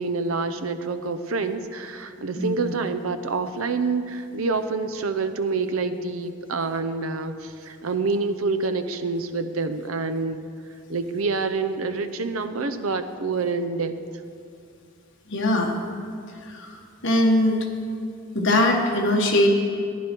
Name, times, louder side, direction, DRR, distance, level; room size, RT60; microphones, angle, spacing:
voice 1, 0.0-10.4 10.9-13.9, right 4 dB, 80° right, 10 dB, 0.7 m, -27 dB
voice 2, 2.4-2.7 15.3-15.8 16.5-16.7 17.0-17.7 18.3-19.5, left 1 dB, 60° left, 1 dB, 1.5 m, -21 dB
15.0 x 10.5 x 4.5 m, 2.3 s
head